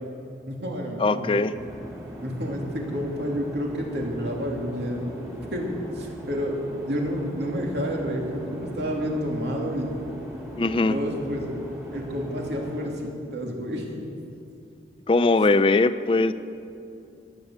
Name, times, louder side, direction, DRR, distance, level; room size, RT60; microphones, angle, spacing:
voice 1, 0.5-1.3 2.2-5.1 5.5-6.6 6.9-9.9 10.8-11.4 11.9-13.9, equal, 70° right, -1 dB, 2.6 m, -29 dB
voice 2, 1.0-1.6 10.6-11.0 15.1-16.3, left 3 dB, 30° left, 13 dB, 0.4 m, -20 dB
sound 1, 1.5-12.9, equal, 15° right, 2.5 m, -40 dB
20.0 x 8.2 x 7.9 m, 2.7 s
head